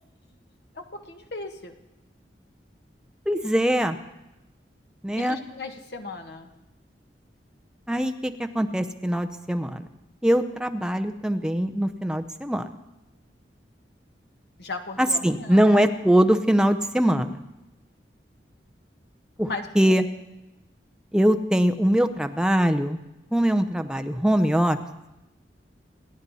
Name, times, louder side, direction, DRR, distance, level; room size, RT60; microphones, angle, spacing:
voice 1, 0.7-1.7 5.2-6.5 14.6-15.8 19.4-20.0, left 3 dB, 65° left, 5 dB, 1.4 m, -37 dB
voice 2, 3.3-4.0 5.0-5.4 7.9-9.8 10.2-12.7 15.0-17.4 19.4-19.5 19.7-20.0 21.1-23.0 23.3-24.8, equal, 5° right, 7 dB, 0.7 m, -22 dB
28.5 x 9.8 x 4.2 m, 0.96 s
head